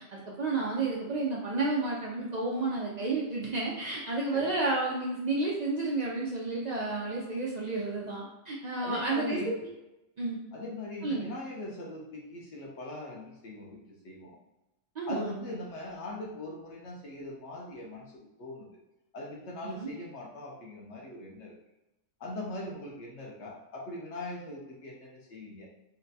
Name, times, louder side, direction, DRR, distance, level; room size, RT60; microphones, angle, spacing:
voice 1, 0.1-9.4 10.2-10.4 11.0-11.3 15.0-15.3 19.6-19.9, right 3 dB, 75° right, -4 dB, 0.3 m, -31 dB
voice 2, 8.8-9.5 10.5-13.8 14.0-14.4 15.1-18.7 19.1-21.6 22.2-25.7, left 1 dB, 60° left, -2 dB, 0.9 m, -40 dB
4.0 x 2.2 x 2.7 m, 0.95 s
omnidirectional pair, 1.4 m